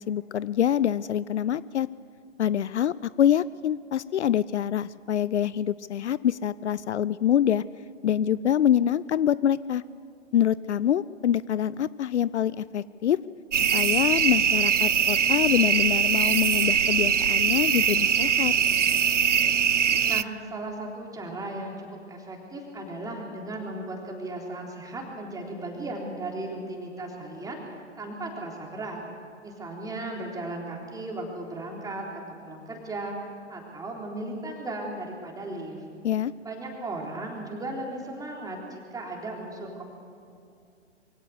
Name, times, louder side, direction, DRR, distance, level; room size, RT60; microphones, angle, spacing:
voice 1, 0.0-1.9 2.4-7.6 8.0-9.8 10.3-13.2 13.7-18.5 36.0-36.3, left 10 dB, 70° left, 19 dB, 0.5 m, -25 dB
sound 1, 13.5-20.2, right 7 dB, 85° right, 0.6 m, -22 dB
voice 2, 20.0-29.0 29.4-33.1 33.5-35.8 36.4-39.8, right 2 dB, 10° right, 0 dB, 3.6 m, -36 dB
23.0 x 16.5 x 8.1 m, 2.4 s
figure-of-eight pair, 115°, 36 cm